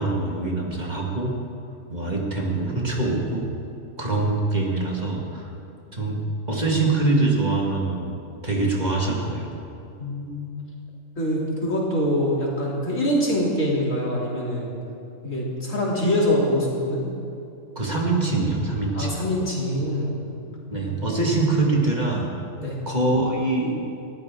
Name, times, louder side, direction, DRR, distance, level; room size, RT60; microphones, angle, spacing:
voice 1, 0.0-1.3 1.9-3.4 4.0-5.5 5.9-6.2 6.5-8.2 8.4-9.5 17.8-19.2 20.7-22.3 22.9-23.7, right 2 dB, 35° right, -2 dB, 2.0 m, -24 dB
voice 2, 10.0-10.5 11.2-14.7 15.2-17.1 18.9-20.1 22.6-22.8, equal, 75° left, -4 dB, 3.5 m, -24 dB
20.0 x 14.0 x 3.7 m, 2.7 s
omnidirectional pair, 1.4 m